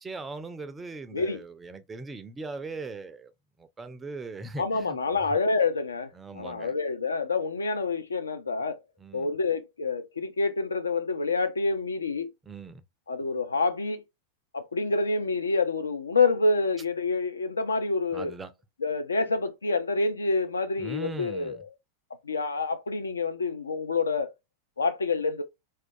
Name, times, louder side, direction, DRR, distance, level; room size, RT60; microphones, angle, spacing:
voice 1, 0.0-3.3 3.6-5.0 5.3-5.4 6.1-6.7 9.0-9.3 12.5-12.8 18.1-18.5 20.8-21.6, right 3 dB, 15° right, 0.4 m, -39 dB
voice 2, 4.6-8.8 9.1-12.3 13.1-14.0 14.5-18.3 18.8-21.7 22.2-24.3 24.8-25.4, left 3 dB, 75° left, 0.3 m, -27 dB
2.2 x 2.2 x 2.5 m
figure-of-eight pair, 90°, 0 cm